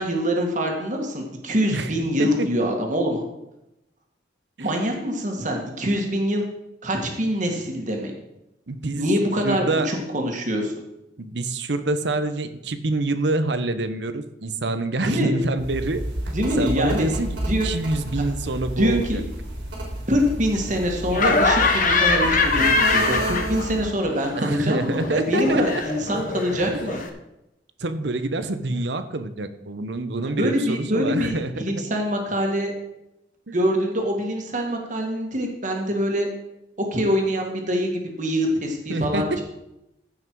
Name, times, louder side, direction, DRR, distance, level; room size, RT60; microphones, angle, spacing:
voice 1, 0.0-3.2 4.6-6.4 6.8-8.1 9.0-10.7 15.0-15.3 16.3-17.1 17.5-17.7 18.8-19.2 20.1-27.0 30.4-32.7 33.5-36.3 36.8-37.9 38.2-39.4, equal, 45° right, 2 dB, 1.9 m, -24 dB
voice 2, 8.7-9.1 9.4-9.9 11.2-16.0 16.6-17.3 17.6-19.2 24.4-25.8 27.8-31.8 33.5-33.6 38.9-39.4, right 2 dB, 70° right, 11 dB, 0.8 m, -26 dB
sound 1, 15.6-23.9, right 1 dB, 85° right, 3.8 m, -31 dB
Laughter, 21.1-23.9 24.2-27.1, left 3 dB, 45° left, 1.3 m, -23 dB
15.5 x 5.8 x 4.7 m, 0.88 s
head